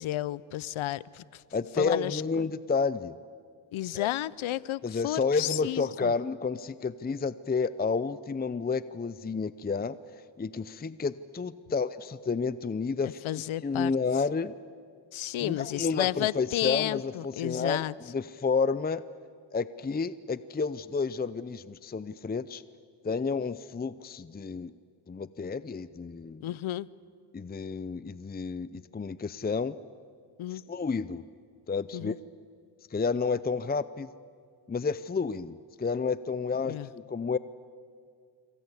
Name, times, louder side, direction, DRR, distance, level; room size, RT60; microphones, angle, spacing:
voice 1, 0.0-1.4 1.8-2.5 3.7-6.1 13.2-13.9 15.1-17.9 26.4-26.9 30.4-30.6 31.9-32.1 36.7-36.9, left 14 dB, 80° left, 21 dB, 0.7 m, -32 dB
voice 2, 1.5-3.1 3.9-4.1 4.8-10.0 10.4-13.2 13.6-14.5 15.4-19.0 19.5-22.6 23.0-24.7 25.1-26.4 27.3-29.8 30.5-31.2 31.7-32.2 32.9-34.1 34.7-37.4, left 4 dB, 20° left, 16 dB, 0.6 m, -30 dB
26.5 x 25.0 x 8.3 m, 2.2 s
cardioid pair, 85°, 48 cm